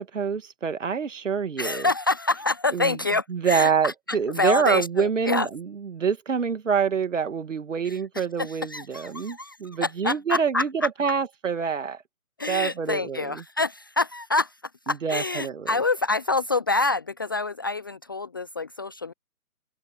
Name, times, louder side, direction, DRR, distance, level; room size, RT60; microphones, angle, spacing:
voice 1, 0.0-1.9 2.7-3.0 3.3-12.0 12.5-13.4 14.9-15.7, right 6 dB, 55° right, 2.4 m, -26 dB
voice 2, 1.6-5.5 7.8-10.9 12.4-14.6 14.9-19.1, left 3 dB, 15° left, 0.7 m, -27 dB
figure-of-eight pair, 145°, 45 cm